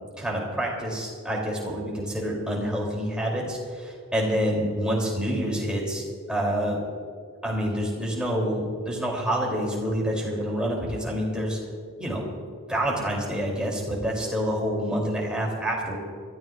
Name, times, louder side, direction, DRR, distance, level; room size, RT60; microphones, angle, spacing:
voice 1, 0.2-6.8 7.4-11.6 12.0-12.3 12.7-16.0, equal, 5° right, -3 dB, 3.2 m, -27 dB
27.5 x 13.5 x 2.5 m, 2.1 s
head